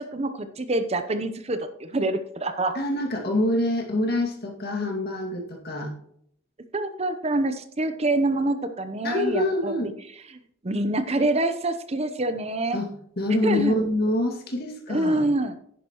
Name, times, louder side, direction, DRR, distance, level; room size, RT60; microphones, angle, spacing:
voice 1, 0.0-2.8 6.7-9.7 10.6-12.8 13.4-13.7 14.9-15.6, right 2 dB, 35° right, 9 dB, 0.8 m, -26 dB
voice 2, 2.7-5.9 9.0-9.9 12.7-12.9 13.2-15.2, left 1 dB, 55° left, 2 dB, 2.2 m, -26 dB
10.5 x 10.5 x 3.0 m, 0.68 s
head